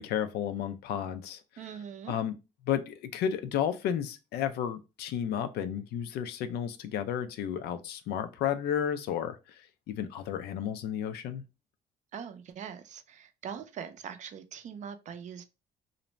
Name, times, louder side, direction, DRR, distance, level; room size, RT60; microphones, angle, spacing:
voice 1, 0.0-1.4 2.1-2.3 2.6-11.4, left 9 dB, 70° left, 0.4 m, -32 dB
voice 2, 1.6-2.1 12.1-15.4, right 7 dB, 45° right, 0.4 m, -42 dB
2.5 x 2.1 x 3.0 m
cardioid pair, 110°, 17 cm